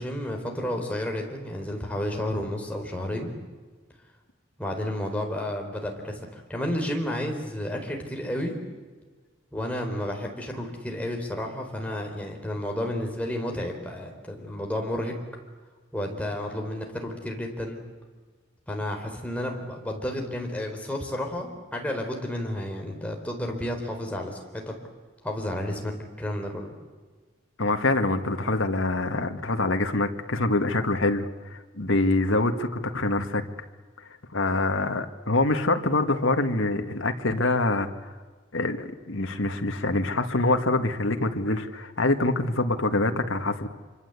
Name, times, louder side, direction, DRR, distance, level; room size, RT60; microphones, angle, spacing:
voice 1, 0.0-3.3 4.6-8.5 9.5-15.1 15.9-17.8 18.7-24.4 24.7-24.8 25.2-25.9 26.2-26.8, left 1 dB, 5° left, 1 dB, 4.4 m, -31 dB
voice 2, 27.6-32.7 32.9-33.4 34.3-37.9 38.5-43.7, left 2 dB, 70° left, 6 dB, 1.9 m, -25 dB
26.5 x 25.0 x 8.3 m, 1.4 s
head